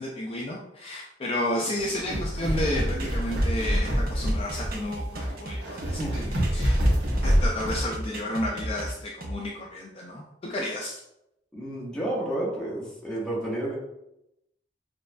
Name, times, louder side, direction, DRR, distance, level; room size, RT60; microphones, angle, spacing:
voice 1, 0.0-6.9 7.2-11.0, left 1 dB, 35° left, -2 dB, 0.4 m, -32 dB
sound 1, 1.8-7.9, equal, 80° right, 1.2 m, -26 dB
sound 2, 2.6-7.3 7.6-9.3, right 1 dB, 55° right, 0.6 m, -35 dB
voice 2, 6.0-6.3 11.5-13.8, right 1 dB, 5° left, -6 dB, 1.2 m, -31 dB
6.5 x 2.3 x 2.2 m, 0.86 s
head